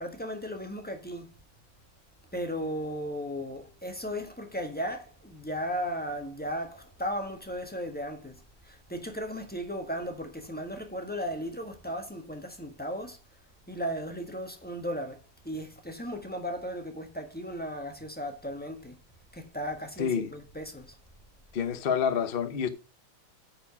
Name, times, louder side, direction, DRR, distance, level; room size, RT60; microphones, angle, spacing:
voice 1, 0.0-1.3 2.3-13.2 13.7-19.0 19.3-20.9, equal, 5° left, 1.0 m, -36 dB
voice 2, 20.0-20.3 21.5-22.7, left 7 dB, 65° left, 0.5 m, -28 dB
9.1 x 5.0 x 5.8 m
omnidirectional pair, 2.4 m